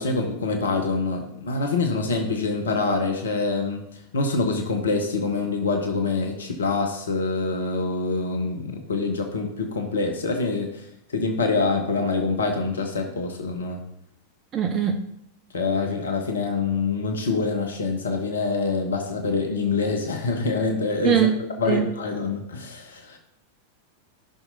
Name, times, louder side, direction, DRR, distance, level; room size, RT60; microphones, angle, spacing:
voice 1, 0.0-3.8 4.1-10.7 11.1-13.8 15.5-23.2, left 3 dB, 70° left, 4 dB, 1.0 m, -25 dB
voice 2, 14.5-14.9 21.0-21.4 21.7-21.8, right 8 dB, 30° right, 6 dB, 0.6 m, -21 dB
14.0 x 6.1 x 2.7 m, 0.78 s
figure-of-eight pair, 90°, 0 cm